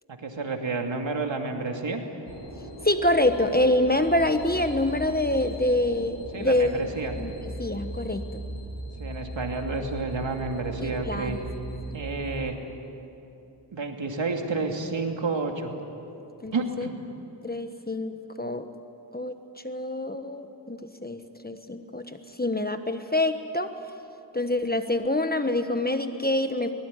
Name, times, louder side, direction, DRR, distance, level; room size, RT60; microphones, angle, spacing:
voice 1, 0.1-2.0 6.3-7.1 9.0-11.4 11.9-12.6 13.7-15.7 16.5-16.9, right 3 dB, 85° right, 3 dB, 2.5 m, -30 dB
sound 1, 2.3-12.5, right 1 dB, 60° right, 5.4 m, -38 dB
voice 2, 2.8-6.7 7.2-7.3 7.6-8.4 10.8-11.4 16.4-16.9 17.4-18.1 18.4-18.7 19.1-19.4 19.6-23.7 24.3-26.7, left 1 dB, 20° left, 8 dB, 1.3 m, -26 dB
23.5 x 20.5 x 9.7 m, 2.8 s
wide cardioid pair, 75°, 44 cm